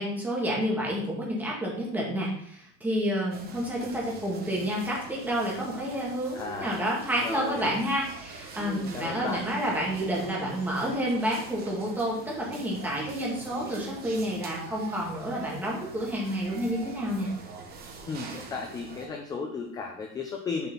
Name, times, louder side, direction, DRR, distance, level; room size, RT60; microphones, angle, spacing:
voice 1, 0.0-17.3, equal, 5° right, -4 dB, 1.7 m, -29 dB
sound 1, 3.3-19.1, right 4 dB, 30° right, 1.2 m, -43 dB
voice 2, 6.3-6.9 7.2-7.7 8.6-9.4 18.1-20.7, left 4 dB, 10° left, 2 dB, 0.4 m, -35 dB
6.9 x 4.3 x 5.5 m, 0.66 s
cardioid pair, 175°, 34 cm